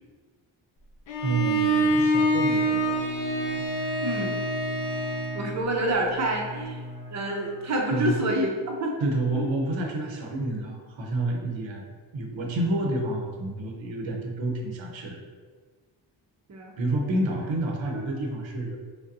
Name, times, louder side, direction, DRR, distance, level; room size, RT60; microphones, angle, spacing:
Bowed string instrument, 1.1-5.5, right 1 dB, 65° left, 0.6 m, -25 dB
voice 1, 1.2-3.1 7.9-8.2 9.0-11.8 12.1-15.2 16.8-18.8, right 1 dB, 75° right, 1 dB, 0.8 m, -29 dB
Bowed string instrument 2, 2.2-8.8, equal, 15° left, 0.6 m, -39 dB
voice 2, 4.0-4.4 5.3-6.8 7.1-8.5 8.8-8.9 9.4-9.5 16.5-16.7, right 1 dB, 35° right, 0 dB, 0.6 m, -27 dB
5.2 x 2.1 x 2.6 m, 1.5 s
wide cardioid pair, 130°, 47 cm